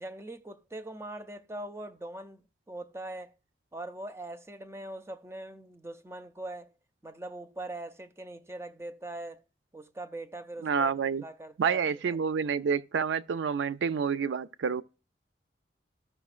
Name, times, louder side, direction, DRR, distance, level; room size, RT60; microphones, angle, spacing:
voice 1, 0.0-3.3 3.7-6.7 7.0-9.4 9.7-12.2, right 1 dB, 15° right, 0.4 m, -42 dB
voice 2, 10.6-11.2 11.6-14.8, right 6 dB, 85° right, 0.4 m, -28 dB
14.5 x 5.5 x 2.4 m
head